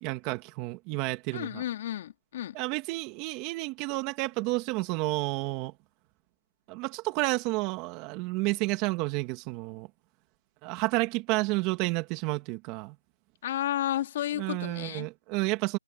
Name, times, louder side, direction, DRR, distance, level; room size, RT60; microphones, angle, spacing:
voice 1, 0.0-1.6 2.5-5.7 6.7-9.9 10.6-13.0 14.4-15.8, right 23 dB, 10° right, 2.1 m, -30 dB
voice 2, 1.3-2.5 13.4-15.1, left 12 dB, 15° left, 2.6 m, -32 dB
figure-of-eight pair, 170°, 0 cm